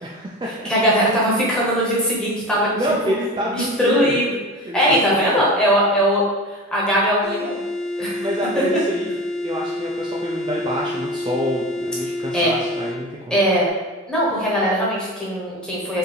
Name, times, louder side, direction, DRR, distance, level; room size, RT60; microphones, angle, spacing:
voice 1, 0.0-0.7 2.6-4.1 4.6-4.8 5.3-5.4 8.0-9.2 9.4-13.4, equal, 25° right, -4 dB, 0.3 m, -27 dB
voice 2, 0.6-2.7 3.5-4.3 4.7-6.2 6.5-7.6 8.0-8.3 8.5-8.6 12.3-12.5 13.3-13.7 14.1-16.0, equal, 5° left, -6 dB, 1.0 m, -20 dB
sound 1, 7.2-13.0, left 1 dB, 35° left, 0.9 m, -28 dB
4.5 x 2.6 x 3.2 m, 1.3 s
head